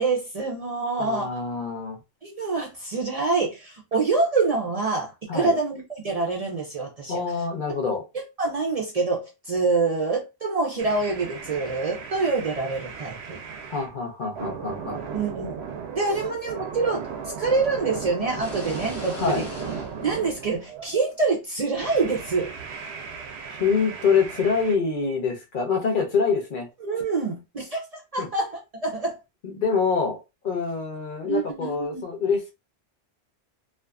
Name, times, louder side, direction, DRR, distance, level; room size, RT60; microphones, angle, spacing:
voice 1, 0.0-1.4 2.2-7.1 8.4-13.4 15.1-15.6 15.9-17.0 17.4-19.4 20.0-22.5 26.8-27.8 28.1-28.5 28.8-29.1 31.2-32.0, right 3 dB, 45° right, 0.5 m, -26 dB
voice 2, 1.0-2.0 5.3-5.5 7.1-8.0 13.7-15.0 19.1-19.5 23.5-26.7 28.2-28.3 29.4-30.2 30.4-32.5, left 5 dB, 55° left, 0.8 m, -25 dB
sound 1, 10.8-13.9 14.4-21.0 21.7-24.8, right 6 dB, 85° right, 0.9 m, -36 dB
sound 2, 18.3-21.1, left 2 dB, 15° left, 0.8 m, -41 dB
2.5 x 2.4 x 2.3 m
omnidirectional pair, 1.1 m